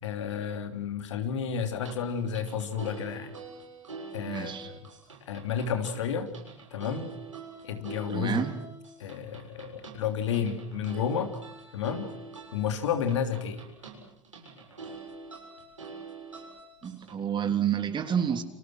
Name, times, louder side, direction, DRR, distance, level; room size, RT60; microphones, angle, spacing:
voice 1, 0.0-3.3 4.1-4.8 5.3-6.3 6.7-7.1 7.6-8.4 9.0-11.3 11.7-12.1 12.5-13.6, left 7 dB, 70° left, 6 dB, 3.2 m, -31 dB
sound 1, 1.8-17.1, right 4 dB, 85° right, 7.2 m, -45 dB
voice 2, 4.3-4.7 8.1-8.5 16.8-18.4, right 8 dB, 30° right, 7 dB, 3.5 m, -29 dB
30.0 x 27.0 x 6.3 m, 0.76 s
figure-of-eight pair, 80°, 16 cm